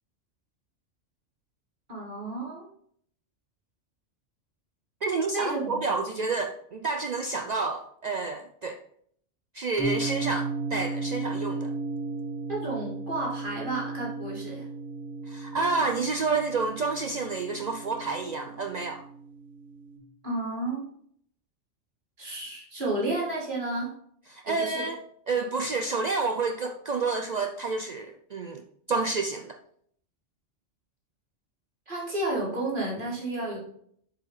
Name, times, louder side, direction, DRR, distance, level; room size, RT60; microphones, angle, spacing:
voice 1, 1.9-2.7 5.3-5.9 12.5-14.7 20.2-20.9 22.2-23.9 24.5-24.9 31.9-33.6, right 2 dB, 45° right, -4 dB, 2.3 m, -31 dB
voice 2, 5.0-8.8 9.5-11.7 15.3-19.0 24.3-25.0 25.3-28.6 28.9-29.6, right 4 dB, 65° right, 5 dB, 0.4 m, -29 dB
sound 1, 9.8-20.0, right 3 dB, 10° left, 1.8 m, -35 dB
7.8 x 4.8 x 3.2 m, 0.66 s
omnidirectional pair, 1.2 m